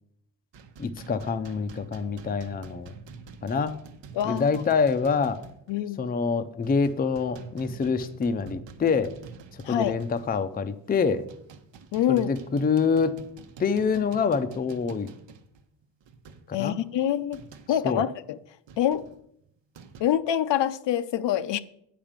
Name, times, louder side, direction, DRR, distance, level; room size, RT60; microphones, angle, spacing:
sound 1, 0.5-5.8 6.0-6.2 6.6-10.6 11.1-17.9 18.7-20.0, right 5 dB, 85° right, 1.0 m, -47 dB
voice 1, 0.8-2.9 3.4-3.8 4.2-5.4 6.0-9.1 9.7-11.2 12.1-13.2 13.6-15.1 16.5-16.8 17.8-18.0, left 5 dB, 20° left, 0.4 m, -26 dB
voice 2, 4.1-4.6 5.7-6.1 9.6-9.9 11.9-12.3 16.5-17.4 17.7-18.4 18.8-19.1 20.0-21.6, left 10 dB, 75° left, 0.6 m, -26 dB
8.8 x 5.1 x 7.3 m
wide cardioid pair, 160°, 43 cm